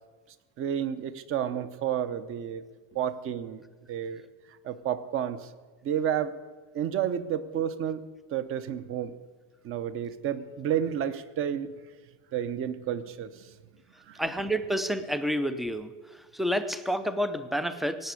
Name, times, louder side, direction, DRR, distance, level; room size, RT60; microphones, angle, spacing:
voice 1, 0.6-2.6 2.9-3.6 3.9-4.3 4.6-5.5 5.8-6.3 6.7-8.1 8.3-9.1 9.6-11.7 12.3-13.5 14.1-14.2, right 9 dB, 35° right, 13 dB, 0.8 m, -31 dB
voice 2, 14.2-15.9 16.3-18.1, equal, ahead, 12 dB, 0.4 m, -29 dB
17.0 x 8.7 x 8.3 m, 1.4 s
cardioid pair, 170°, 36 cm